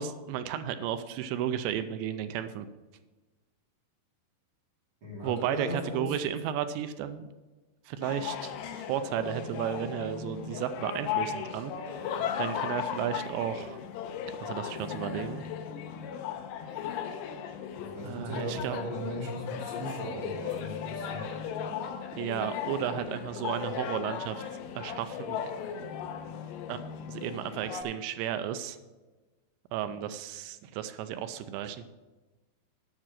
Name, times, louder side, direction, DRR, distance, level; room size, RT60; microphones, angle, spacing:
voice 1, 0.0-2.7 5.2-7.2 7.9-8.5 8.9-11.7 12.4-13.8 14.4-15.4 18.0-18.8 22.1-24.4 24.8-25.5 26.7-26.8 27.1-28.8 29.7-31.8, right 10 dB, 85° right, 10 dB, 2.7 m, -33 dB
voice 2, 5.0-6.2 17.8-21.2, equal, 30° right, -5 dB, 3.0 m, -37 dB
sound 1, 8.0-27.8, left 8 dB, 85° left, 2.2 m, -37 dB
9.5 x 6.2 x 7.4 m, 1.2 s
omnidirectional pair, 5.4 m